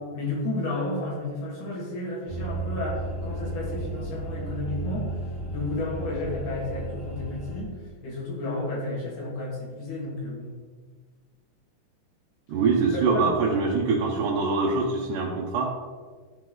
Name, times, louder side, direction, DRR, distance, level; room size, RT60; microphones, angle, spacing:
voice 1, 0.1-5.1 5.5-7.7 8.0-10.5 13.1-13.4, left 2 dB, 80° left, -5 dB, 3.7 m, -32 dB
sound 1, 2.3-7.6, right 1 dB, 10° left, 1.0 m, -33 dB
voice 2, 12.5-15.7, right 4 dB, 80° right, -3 dB, 2.4 m, -24 dB
12.0 x 4.7 x 3.8 m, 1.5 s
omnidirectional pair, 3.6 m